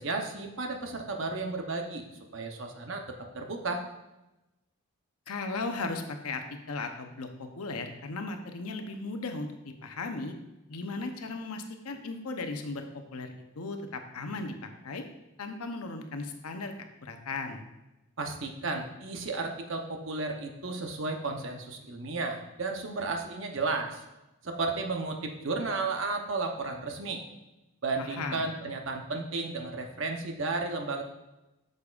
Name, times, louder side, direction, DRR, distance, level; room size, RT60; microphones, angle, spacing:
voice 1, 0.0-2.0 2.3-3.0 3.3-3.8 18.2-24.0 24.4-27.2 27.8-31.0, right 3 dB, 60° right, 3 dB, 0.8 m, -33 dB
voice 2, 5.3-10.3 10.7-12.9 13.1-15.0 15.4-17.6 28.0-28.5, left 3 dB, 90° left, 6 dB, 0.8 m, -36 dB
8.4 x 6.6 x 2.4 m, 1.0 s
head